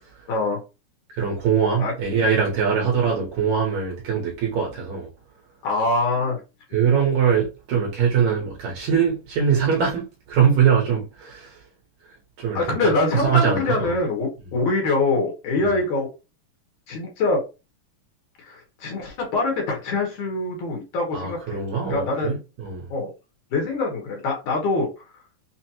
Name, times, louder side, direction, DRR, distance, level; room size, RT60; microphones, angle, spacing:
voice 1, 0.3-0.6 1.8-1.9 5.6-6.4 6.7-6.8 12.5-16.1 16.9-17.4 18.4-21.6 21.9-22.4 22.9-23.1 23.5-24.9 25.1-25.2, left 2 dB, 65° left, 2.3 m, -24 dB
voice 2, 1.1-5.1 6.7-11.6 12.4-12.9 13.2-13.9 21.1-22.8, right 7 dB, 70° right, 1.9 m, -22 dB
6.0 x 2.1 x 2.8 m
omnidirectional pair, 4.1 m